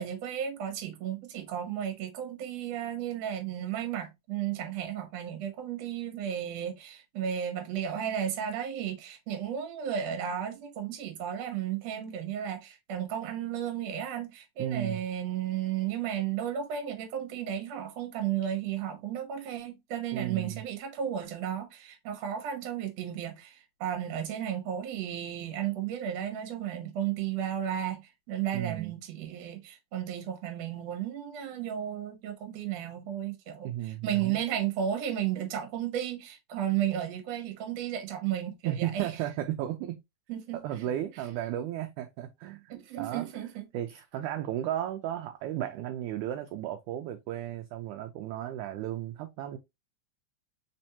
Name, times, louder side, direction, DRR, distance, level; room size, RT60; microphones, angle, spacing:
voice 1, 0.0-39.1 40.3-40.9 42.7-43.7, right 10 dB, 65° right, 1.9 m, -34 dB
voice 2, 14.6-15.0 20.1-20.6 28.5-29.0 33.6-34.4 38.6-40.0 40.5-43.3 43.7-49.6, right 12 dB, 80° right, 1.9 m, -34 dB
4.4 x 4.2 x 2.7 m
omnidirectional pair, 3.9 m